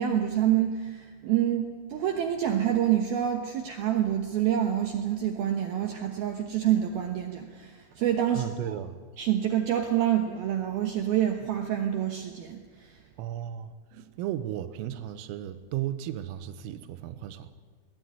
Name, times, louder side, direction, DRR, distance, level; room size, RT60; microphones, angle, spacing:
voice 1, 0.0-8.4 9.2-13.0, right 10 dB, 70° right, 4 dB, 2.3 m, -27 dB
voice 2, 8.3-9.0 13.2-17.6, right 11 dB, 85° right, 11 dB, 3.7 m, -35 dB
22.5 x 17.5 x 9.5 m, 1.5 s
omnidirectional pair, 5.9 m